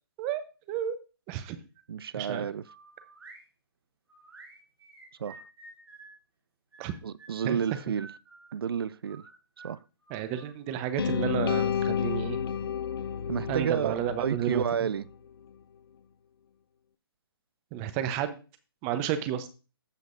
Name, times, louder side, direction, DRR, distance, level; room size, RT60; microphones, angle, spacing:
voice 1, 1.9-2.6 5.2-5.4 7.0-8.1 8.5-9.2 9.6-9.8 13.3-15.1, right 7 dB, 70° right, 0.5 m, -31 dB
sound 1, 2.6-3.4 4.1-6.2 6.7-8.5 9.0-10.9, right 3 dB, 85° right, 2.9 m, -51 dB
voice 2, 10.1-12.4 13.5-14.6 17.7-18.4 18.8-19.5, right 10 dB, 20° right, 0.8 m, -31 dB
sound 2, 11.0-15.1, left 7 dB, 70° left, 0.6 m, -31 dB
14.5 x 5.2 x 2.5 m
hypercardioid pair, 150°, 13 cm